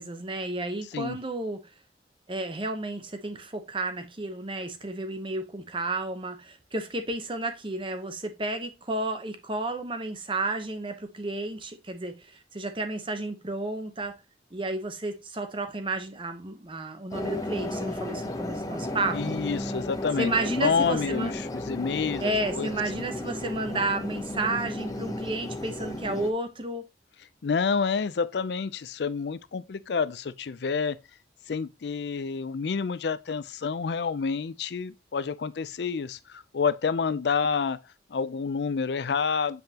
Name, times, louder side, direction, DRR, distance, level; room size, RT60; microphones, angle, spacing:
voice 1, 0.0-1.7 2.3-14.2 14.5-19.4 20.2-21.3 22.2-26.9, right 2 dB, 30° right, 0.9 m, -32 dB
sound 1, 17.1-26.3, left 1 dB, 20° left, 0.8 m, -34 dB
voice 2, 19.1-22.8 27.4-31.0 31.5-37.8 38.1-39.6, left 5 dB, 70° left, 0.4 m, -28 dB
7.7 x 5.3 x 2.9 m
head